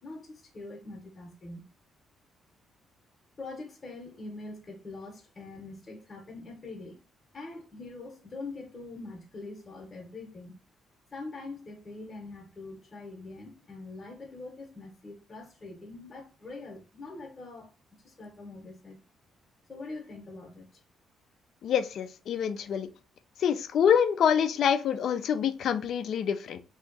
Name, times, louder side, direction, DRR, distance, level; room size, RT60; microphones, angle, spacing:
voice 1, 0.0-1.6 3.4-7.0 7.3-10.6 11.1-17.7 18.0-19.0 19.7-20.8, left 3 dB, 30° left, 0.9 m, -43 dB
voice 2, 21.6-22.9 23.4-26.6, left 8 dB, 65° left, 0.4 m, -26 dB
2.7 x 2.3 x 3.8 m
cardioid pair, 90°, 0 cm